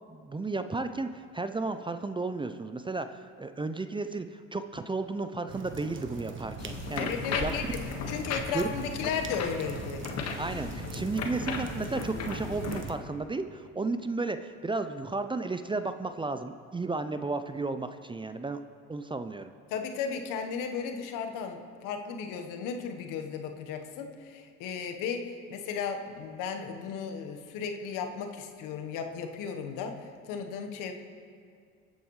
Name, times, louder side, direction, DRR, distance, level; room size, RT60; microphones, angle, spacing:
voice 1, 0.1-7.5 8.5-8.7 10.4-18.6 18.9-19.5, right 3 dB, 15° right, 9 dB, 0.6 m, -33 dB
sound 1, 5.5-13.0, right 5 dB, 35° right, 1.4 m, -42 dB
sound 2, 6.6-12.8, left 5 dB, 50° left, 1.8 m, -36 dB
voice 2, 7.0-7.6 8.1-10.1 19.7-30.9, left 6 dB, 70° left, 5 dB, 1.4 m, -35 dB
22.0 x 9.1 x 3.3 m, 2.2 s
hypercardioid pair, 65°, 33 cm